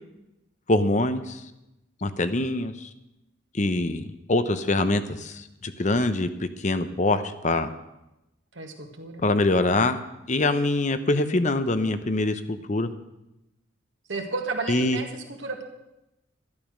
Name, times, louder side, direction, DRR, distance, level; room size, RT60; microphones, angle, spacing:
voice 1, 0.7-1.4 2.0-2.9 3.5-7.7 9.2-10.0 10.3-12.9 14.7-15.0, left 2 dB, 40° left, 11 dB, 0.7 m, -24 dB
voice 2, 8.5-9.3 14.1-15.6, right 3 dB, 75° right, 3 dB, 2.0 m, -33 dB
12.0 x 11.0 x 6.4 m, 0.92 s
head